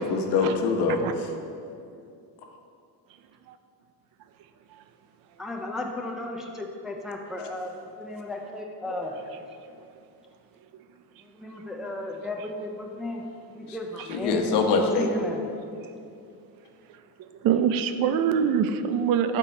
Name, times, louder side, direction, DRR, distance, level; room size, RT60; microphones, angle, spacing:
voice 1, 0.1-1.3 13.7-15.1, left 4 dB, 80° left, 4 dB, 1.0 m, -25 dB
voice 2, 5.4-7.7 8.0-9.1 11.4-13.2 13.6-14.5 14.8-15.4, left 1 dB, ahead, 0 dB, 0.3 m, -34 dB
voice 3, 17.4-19.4, right 8 dB, 60° right, 10 dB, 0.5 m, -24 dB
12.0 x 4.6 x 4.3 m, 2.5 s
cardioid pair, 175°, 40 cm